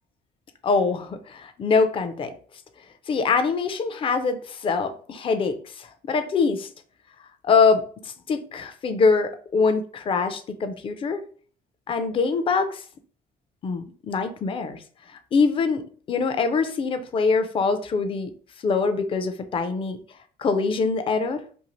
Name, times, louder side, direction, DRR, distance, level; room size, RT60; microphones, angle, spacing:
voice 1, 0.6-2.3 3.1-6.7 7.4-11.2 11.9-12.8 13.6-14.8 15.1-18.3 18.6-20.0 20.4-21.4, left 4 dB, 30° left, 8 dB, 0.4 m, -24 dB
2.7 x 2.4 x 3.0 m, 0.43 s
cardioid pair, 110°, 17 cm